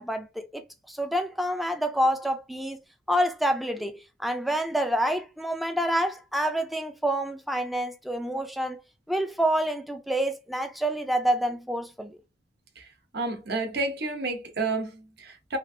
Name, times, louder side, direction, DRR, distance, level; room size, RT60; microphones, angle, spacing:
voice 1, 0.0-2.8 3.1-8.8 9.1-12.2, right 1 dB, ahead, 0.3 m, -27 dB
voice 2, 13.1-15.6, right 3 dB, 60° right, 0.7 m, -30 dB
2.9 x 2.4 x 2.6 m
head